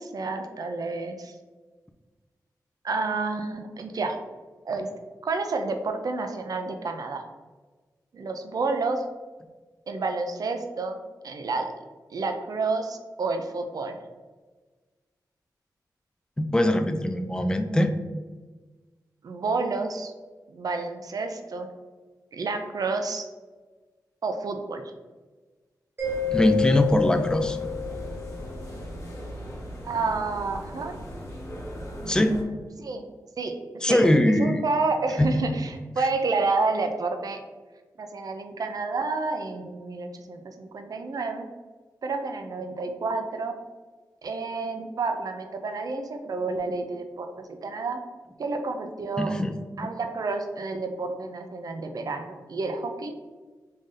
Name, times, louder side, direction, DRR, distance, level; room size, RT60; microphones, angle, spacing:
voice 1, 0.0-1.3 2.8-4.2 4.7-4.9 5.2-7.2 8.1-9.0 9.9-11.0 11.2-11.7 12.1-14.0 19.2-20.1 20.5-21.7 22.3-23.2 24.2-24.8 29.8-31.0 32.0-33.0 33.4-33.5 33.9-37.4 38.0-41.5 42.0-43.5 44.2-48.0 48.4-49.3 49.8-53.1, right 3 dB, 60° right, 6 dB, 0.4 m, -30 dB
voice 2, 16.4-18.0 26.3-27.6 32.1-32.4 33.8-34.6 35.2-35.5 36.0-36.1 49.2-49.6, left 1 dB, 10° left, 7 dB, 0.3 m, -22 dB
sound 1, 26.0-32.4, equal, 40° left, 1.0 m, -38 dB
Mallet percussion, 26.0-28.5, left 8 dB, 30° right, 1.0 m, -29 dB
3.4 x 2.7 x 3.6 m, 1.3 s
wide cardioid pair, 90°, 7 cm